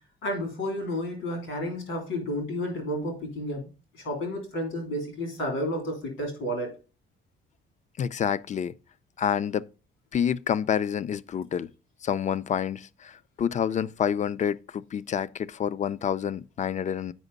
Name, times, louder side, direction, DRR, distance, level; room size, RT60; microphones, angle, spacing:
voice 1, 0.2-3.6 3.9-6.7, equal, 90° left, 3.1 m, -31 dB
voice 2, 8.0-8.7 9.2-9.7 10.1-11.7 12.0-17.1, left 8 dB, 40° left, 0.4 m, -28 dB
8.1 x 5.1 x 4.0 m
cardioid pair, 90°, 20 cm